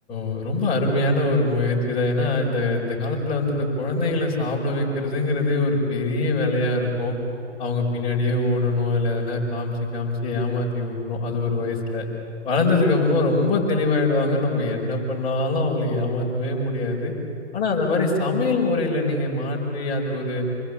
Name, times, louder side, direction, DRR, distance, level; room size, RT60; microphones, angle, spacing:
voice 1, 0.1-7.1 7.6-12.0 12.4-17.1 17.5-20.5, left 2 dB, 15° left, -4 dB, 5.0 m, -23 dB
28.5 x 21.0 x 8.6 m, 2.7 s
hypercardioid pair, 155°, 36 cm